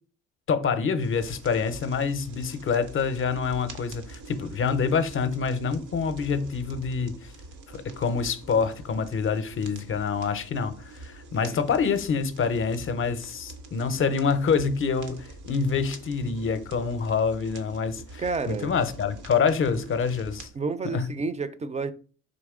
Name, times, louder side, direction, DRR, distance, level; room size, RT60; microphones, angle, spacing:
voice 1, 0.5-7.3 7.7-20.5 20.9-21.1, left 5 dB, 45° left, 0.6 m, -26 dB
sound 1, 1.0-20.5, right 2 dB, 85° right, 0.8 m, -45 dB
voice 2, 18.2-18.7 20.6-21.9, right 4 dB, 25° right, 0.4 m, -30 dB
4.0 x 2.9 x 3.6 m
cardioid pair, 90°, 30 cm